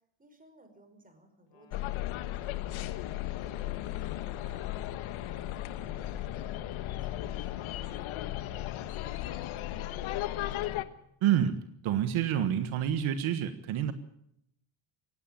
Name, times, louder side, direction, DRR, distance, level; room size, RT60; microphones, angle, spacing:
voice 1, 0.2-3.1 3.4-10.0, right 1 dB, 15° right, 7 dB, 5.2 m, -59 dB
Wind instrument woodwind instrument, 1.5-5.8, left 1 dB, 55° left, 5.1 m, -60 dB
sound 1, 1.7-10.8, left 14 dB, 70° left, 1.4 m, -35 dB
voice 2, 11.2-13.9, right 10 dB, 70° right, 10 dB, 1.6 m, -28 dB
18.5 x 16.5 x 9.1 m, 0.72 s
cardioid pair, 125°, 50 cm